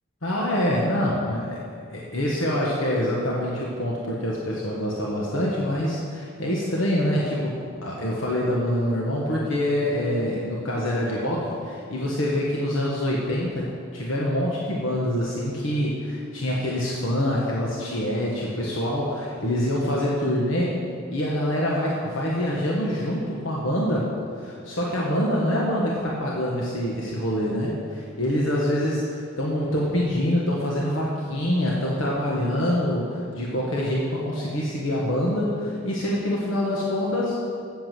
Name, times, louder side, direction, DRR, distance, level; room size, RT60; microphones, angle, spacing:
voice 1, 0.2-1.6 1.9-7.5 7.8-13.7 13.9-20.8 21.1-24.1 24.4-37.4, left 1 dB, 75° left, -4 dB, 1.3 m, -25 dB
8.2 x 7.1 x 7.5 m, 2.3 s
head